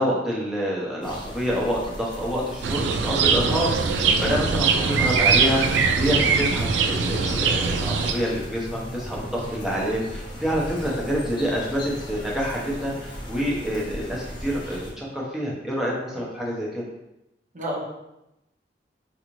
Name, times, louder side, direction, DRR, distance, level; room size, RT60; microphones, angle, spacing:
voice 1, 0.0-16.8, equal, ahead, -5 dB, 0.8 m, -27 dB
sound 1, 1.0-14.9, equal, 25° left, 0.6 m, -37 dB
sound 2, 2.6-8.1, right 5 dB, 80° right, 0.3 m, -22 dB
voice 2, 4.7-5.2 17.5-17.8, right 1 dB, 45° right, -1 dB, 0.7 m, -32 dB
4.0 x 2.5 x 3.0 m, 0.89 s
head